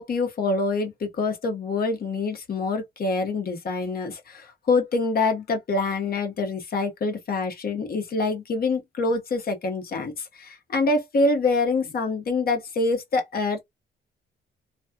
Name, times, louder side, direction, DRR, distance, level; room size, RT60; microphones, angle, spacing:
voice 1, 0.0-13.6, left 3 dB, 50° left, 1.3 m, -25 dB
3.2 x 2.4 x 2.8 m
cardioid pair, 90°, 20 cm